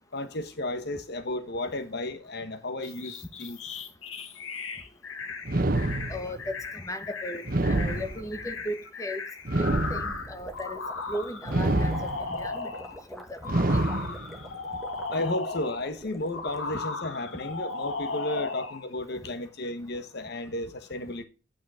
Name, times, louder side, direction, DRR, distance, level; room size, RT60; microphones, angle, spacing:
voice 1, 0.1-3.6 15.1-21.2, left 1 dB, 55° left, 1.2 m, -33 dB
sound 1, 2.8-13.0 13.4-15.9 16.3-18.9, left 4 dB, 85° left, 1.8 m, -36 dB
sound 2, 5.5-6.5 7.4-8.5 9.4-10.5 11.5-12.5 13.4-14.5, right 2 dB, 45° right, 1.2 m, -27 dB
voice 2, 6.1-9.2 9.6-10.8 11.1-11.9 12.3-12.7 13.1-14.2, equal, 15° left, 1.4 m, -37 dB
sound 3, 10.0-16.9, equal, ahead, 2.1 m, -46 dB
9.1 x 8.8 x 4.9 m
head